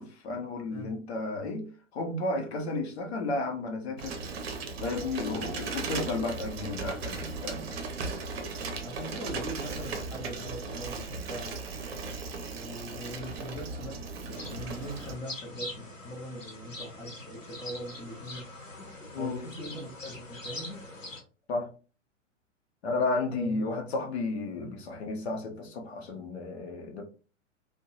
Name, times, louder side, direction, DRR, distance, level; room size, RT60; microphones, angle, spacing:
voice 1, 0.0-4.2 4.8-7.7 19.1-19.4 21.5-21.7 22.8-27.0, left 3 dB, 55° left, 0.8 m, -33 dB
Bicycle, 4.0-15.1, right 4 dB, 55° right, 0.7 m, -37 dB
voice 2, 8.7-12.0 12.5-18.5 19.1-20.8 23.3-23.7 24.5-24.7, equal, 10° left, 0.6 m, -41 dB
sound 1, 14.3-21.2, left 2 dB, 90° left, 0.9 m, -43 dB
2.6 x 2.2 x 2.7 m
figure-of-eight pair, 100°, 38 cm